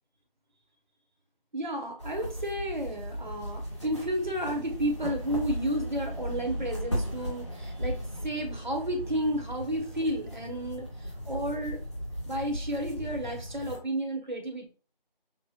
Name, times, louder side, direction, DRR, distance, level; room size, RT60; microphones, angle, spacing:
voice 1, 1.5-10.9 11.2-11.8 12.3-14.7, right 1 dB, 55° right, 2 dB, 1.3 m, -32 dB
sound 1, 2.0-13.8, equal, 30° left, 1.2 m, -36 dB
6.1 x 2.5 x 2.5 m, 0.37 s
figure-of-eight pair, 175°, 29 cm